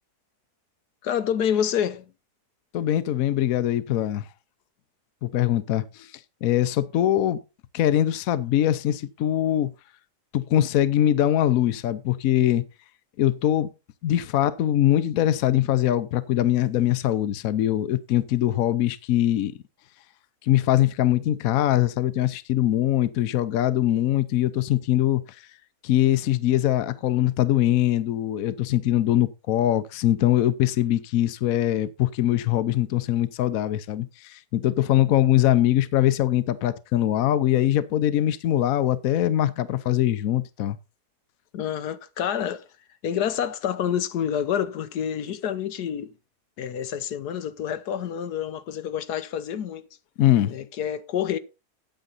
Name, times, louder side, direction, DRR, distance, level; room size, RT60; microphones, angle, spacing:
voice 1, 1.0-2.0 41.5-42.7 43.0-46.1 46.6-49.8 50.4-51.4, left 9 dB, 90° left, 1.4 m, -28 dB
voice 2, 2.7-4.3 5.2-6.1 6.4-7.4 7.7-9.7 10.3-12.6 13.2-13.7 14.0-19.5 20.4-25.2 25.8-40.8 50.2-50.5, left 12 dB, 70° left, 1.1 m, -22 dB
9.0 x 9.0 x 4.0 m
omnidirectional pair, 1.7 m